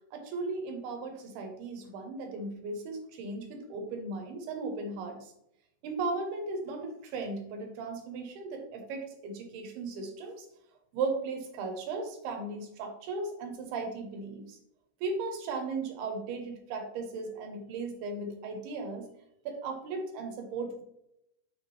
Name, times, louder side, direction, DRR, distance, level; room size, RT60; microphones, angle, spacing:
voice 1, 0.1-5.3 5.8-10.5 10.9-14.6 15.0-19.1 19.5-20.8, right 3 dB, 75° right, 4 dB, 2.8 m, -36 dB
6.8 x 4.3 x 3.2 m, 0.78 s
omnidirectional pair, 4.7 m